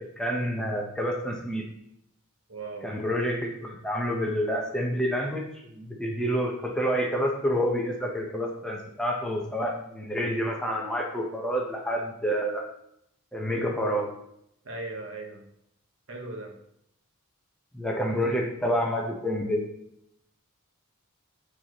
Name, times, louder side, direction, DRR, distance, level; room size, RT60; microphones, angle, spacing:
voice 1, 0.2-1.6 2.8-5.4 5.7-12.6 13.3-14.1 17.7-19.7, equal, 5° left, -1 dB, 0.9 m, -28 dB
voice 2, 2.5-2.9 14.6-15.5 16.1-16.5 18.1-18.3, right 2 dB, 65° right, 1 dB, 1.2 m, -38 dB
8.4 x 4.6 x 3.0 m, 0.74 s
head